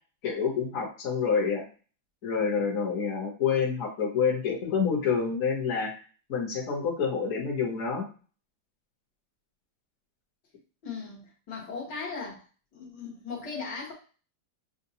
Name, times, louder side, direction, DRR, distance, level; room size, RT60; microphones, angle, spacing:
voice 1, 0.2-1.6 2.2-5.9 6.3-8.0, left 6 dB, 50° left, -3 dB, 1.4 m, -27 dB
voice 2, 10.8-12.4 12.7-13.9, left 4 dB, 65° left, -4 dB, 2.0 m, -38 dB
6.7 x 2.3 x 2.8 m, 0.37 s
omnidirectional pair, 2.1 m